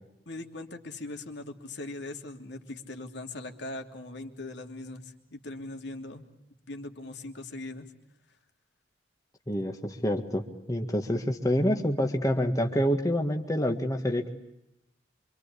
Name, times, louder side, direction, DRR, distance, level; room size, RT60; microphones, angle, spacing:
voice 1, 0.3-6.3 6.7-7.9, left 2 dB, 65° left, 5 dB, 3.1 m, -40 dB
voice 2, 9.5-14.3, equal, 20° left, 4 dB, 1.8 m, -27 dB
26.0 x 26.0 x 8.5 m, 0.85 s
head